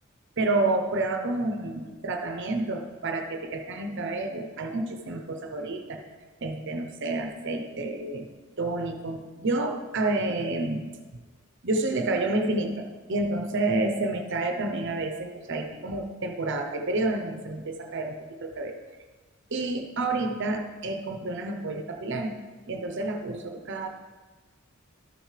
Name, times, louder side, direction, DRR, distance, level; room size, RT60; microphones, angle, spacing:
voice 1, 0.4-6.0 6.4-8.3 8.6-10.9 11.6-18.7 19.5-22.4 22.7-23.9, right 2 dB, 60° right, 5 dB, 0.7 m, -29 dB
12.5 x 6.6 x 3.2 m, 1.3 s
head